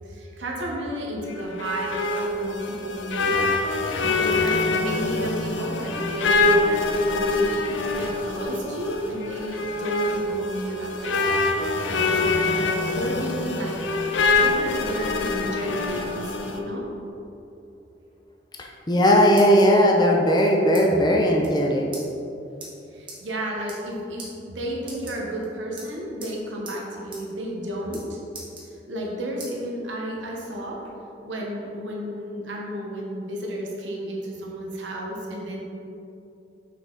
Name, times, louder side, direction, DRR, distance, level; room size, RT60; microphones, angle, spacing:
voice 1, 0.0-3.3 4.0-11.4 11.9-13.8 14.3-16.8 22.9-28.2 28.8-30.8 31.2-35.6, equal, 85° right, -2 dB, 1.0 m, -32 dB
sound 1, 1.3-16.6, left 3 dB, 90° left, 0.6 m, -25 dB
voice 2, 18.9-21.9, equal, 25° left, -1 dB, 0.6 m, -18 dB
sound 2, 18.9-19.8 20.3-20.8 21.1-21.2 21.4-21.6 21.9-22.0 22.6-22.7 23.1-23.2 23.6-23.9 24.2-24.3 24.8-25.4 25.8-26.3 26.6-26.8 27.1-27.2 27.5-28.0 28.3-29.1 29.4-29.5 30.0-30.9, right 3 dB, 25° right, 1.4 m, -41 dB
6.2 x 5.1 x 3.9 m, 2.8 s
head